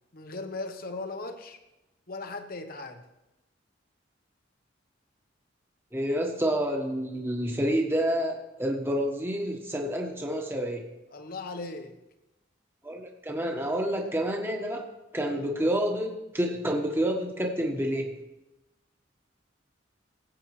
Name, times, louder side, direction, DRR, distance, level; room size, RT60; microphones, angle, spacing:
voice 1, 0.1-1.6 2.1-3.0 11.1-11.9 15.2-15.8, left 3 dB, 50° left, 7 dB, 1.0 m, -38 dB
voice 2, 5.9-10.8 12.8-14.8 15.1-18.1, equal, 10° right, 1 dB, 1.3 m, -28 dB
18.5 x 8.1 x 3.2 m, 0.97 s
head